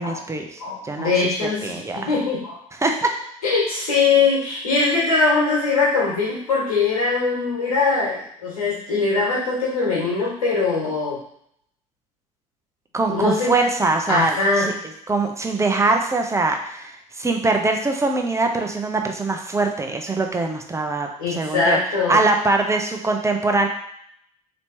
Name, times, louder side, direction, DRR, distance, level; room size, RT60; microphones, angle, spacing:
voice 1, 0.0-1.1 1.6-2.1 2.8-3.1 12.9-14.7 15.1-21.8 22.1-23.7, right 3 dB, 15° right, 3 dB, 0.8 m, -22 dB
voice 2, 0.6-2.6 3.4-11.2 13.1-13.5 14.1-14.7 21.2-22.2, left 4 dB, 85° left, -6 dB, 1.7 m, -21 dB
3.2 x 2.9 x 4.5 m, 0.69 s
hypercardioid pair, 65°, 18 cm